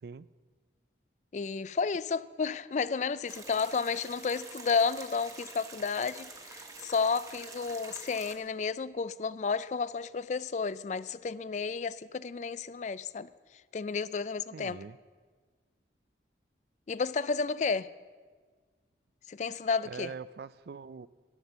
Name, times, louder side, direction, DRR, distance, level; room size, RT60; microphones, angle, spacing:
voice 1, 1.3-13.3 13.7-14.8 16.9-17.9 19.3-20.1, left 5 dB, 40° left, 0.3 m, -32 dB
sound 1, 3.3-8.4, right 4 dB, 20° right, 1.2 m, -47 dB
voice 2, 14.5-15.0 19.8-21.1, right 5 dB, 60° right, 0.4 m, -43 dB
13.5 x 11.0 x 6.7 m
head